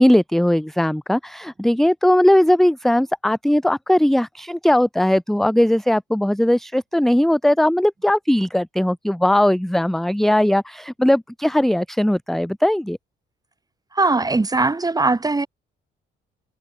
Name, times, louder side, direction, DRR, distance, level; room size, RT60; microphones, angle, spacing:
voice 1, 0.0-13.0, left 1 dB, ahead, 0.8 m, -18 dB
voice 2, 13.9-15.5, right 3 dB, 20° right, 1.9 m, -20 dB
cardioid pair, 90°, 20 cm